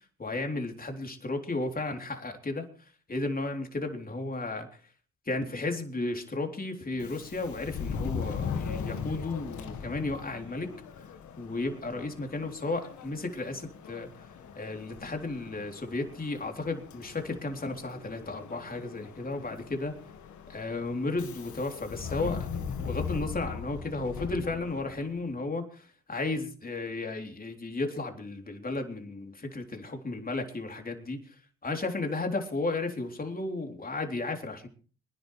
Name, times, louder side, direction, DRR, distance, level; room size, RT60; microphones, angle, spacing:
voice 1, 0.2-4.8 5.3-10.7 11.0-11.1 11.4-14.2 14.6-20.0 20.5-22.5 22.8-34.7, left 2 dB, 25° left, 4 dB, 3.6 m, -34 dB
Subway metro underground, 6.9-25.3, left 6 dB, 65° left, 2.0 m, -39 dB
25.5 x 10.5 x 3.4 m, 0.39 s
hypercardioid pair, 60°, 32 cm